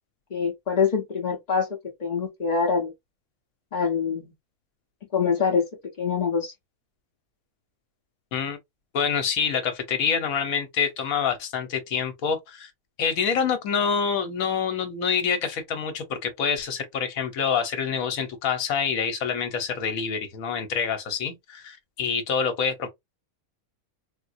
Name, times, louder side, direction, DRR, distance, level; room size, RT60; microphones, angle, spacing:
voice 1, 0.3-1.7 2.0-2.9 3.7-4.3 5.1-5.6 6.0-6.5, left 6 dB, 45° left, 0.6 m, -24 dB
voice 2, 8.9-12.7 13.0-22.9, left 6 dB, 80° left, 1.2 m, -26 dB
3.6 x 2.5 x 2.5 m
omnidirectional pair, 1.5 m